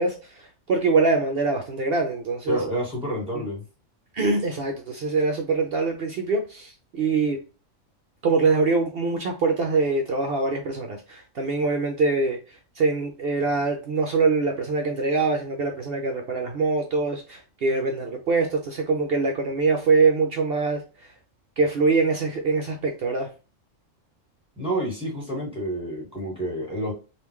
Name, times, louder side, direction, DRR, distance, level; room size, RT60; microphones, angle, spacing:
voice 1, 0.0-2.6 3.3-3.4 4.1-7.4 8.2-20.8 21.6-23.3, right 4 dB, 60° right, 3 dB, 0.7 m, -24 dB
voice 2, 2.5-3.6 24.6-26.9, right 1 dB, 5° right, -4 dB, 1.7 m, -29 dB
3.6 x 2.6 x 3.0 m, 0.33 s
omnidirectional pair, 1.3 m